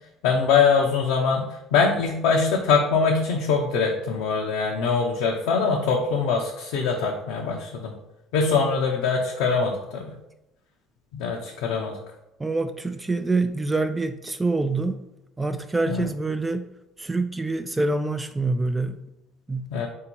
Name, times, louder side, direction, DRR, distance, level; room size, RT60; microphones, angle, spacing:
voice 1, 0.2-7.9 8.3-10.1 11.1-12.0 15.9-16.1 19.7-19.9, left 5 dB, 85° left, 0 dB, 0.6 m, -23 dB
voice 2, 12.4-15.0 15.4-16.7 17.0-19.0 19.5-19.7, right 3 dB, 15° right, 8 dB, 0.3 m, -26 dB
3.6 x 2.7 x 4.4 m, 0.91 s
supercardioid pair, 80°, 0 cm